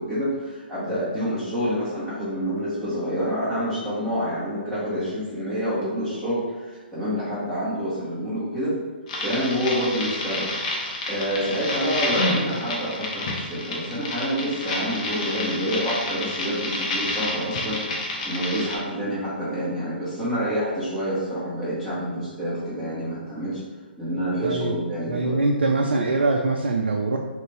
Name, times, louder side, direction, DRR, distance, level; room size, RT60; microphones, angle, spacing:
voice 1, 0.0-8.8 9.2-10.5 11.1-17.8 18.2-23.6 24.0-25.4, equal, 5° left, -12 dB, 1.5 m, -27 dB
sound 1, 9.1-18.8, left 2 dB, 40° left, 0.8 m, -29 dB
voice 2, 24.4-24.7 25.1-27.2, right 3 dB, 70° right, 1 dB, 0.4 m, -23 dB
4.0 x 2.5 x 3.3 m, 1.3 s
figure-of-eight pair, 130°, 6 cm